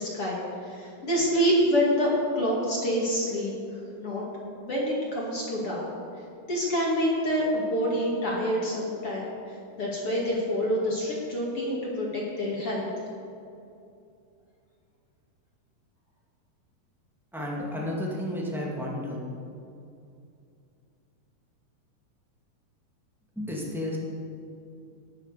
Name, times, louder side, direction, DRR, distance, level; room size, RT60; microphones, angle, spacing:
voice 1, 0.0-3.5 4.0-4.2 4.6-5.9 6.5-12.9, equal, 40° left, -4 dB, 2.7 m, -27 dB
voice 2, 17.3-19.2 23.3-24.0, left 1 dB, ahead, -4 dB, 0.8 m, -32 dB
19.5 x 7.4 x 6.9 m, 2.5 s
omnidirectional pair, 4.6 m